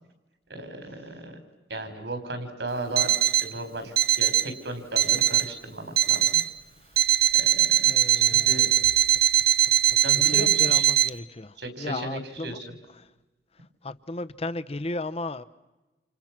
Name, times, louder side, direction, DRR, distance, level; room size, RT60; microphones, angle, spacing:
voice 1, 0.5-1.4 1.7-6.4 7.3-8.7 10.0-10.8 11.6-12.6, right 1 dB, 75° right, 4.3 m, -35 dB
Alarm, 3.0-3.5 4.0-4.5 5.0-5.5 6.0-6.5 7.0-11.1, right 12 dB, 60° right, 0.8 m, -21 dB
voice 2, 7.9-8.9 9.9-12.6 12.9-13.1 13.8-15.4, left 2 dB, 35° left, 0.9 m, -35 dB
29.5 x 28.5 x 6.0 m
head